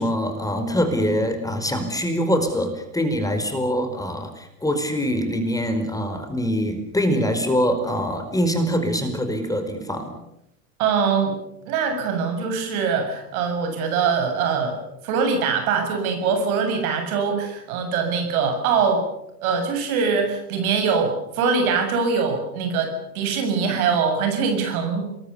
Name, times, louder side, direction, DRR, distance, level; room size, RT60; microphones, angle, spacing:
voice 1, 0.0-10.1, equal, 5° left, 6 dB, 4.9 m, -24 dB
voice 2, 10.8-11.4 11.6-19.0 19.4-25.1, right 5 dB, 65° right, 5 dB, 7.5 m, -23 dB
27.5 x 21.5 x 7.0 m, 0.83 s
hypercardioid pair, 85°, 47 cm